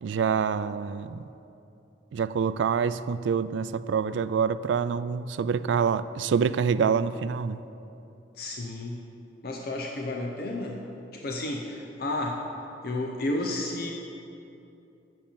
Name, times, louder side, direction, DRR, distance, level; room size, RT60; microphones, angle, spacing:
voice 1, 0.0-1.2 2.1-7.6, right 6 dB, 75° right, 14 dB, 0.3 m, -26 dB
voice 2, 8.4-9.1 9.4-10.8 11.1-12.4 12.8-13.9, left 2 dB, 55° left, 1 dB, 0.7 m, -32 dB
7.9 x 7.3 x 6.9 m, 2.8 s
head